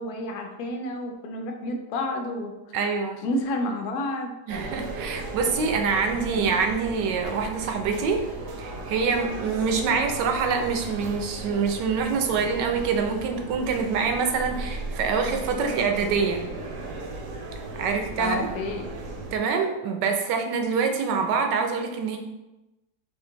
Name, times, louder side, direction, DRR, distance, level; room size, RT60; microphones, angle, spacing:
voice 1, 0.0-2.8 3.2-4.3 6.3-6.6 18.2-18.9, left 1 dB, 70° left, 3 dB, 1.0 m, -30 dB
voice 2, 2.7-3.2 4.5-8.2 8.6-16.4 17.8-18.5 19.3-22.2, right 5 dB, 85° right, 4 dB, 1.3 m, -25 dB
sound 1, 4.5-19.4, right 2 dB, 65° right, 0.8 m, -36 dB
4.4 x 2.5 x 3.8 m, 1.0 s
omnidirectional pair, 1.8 m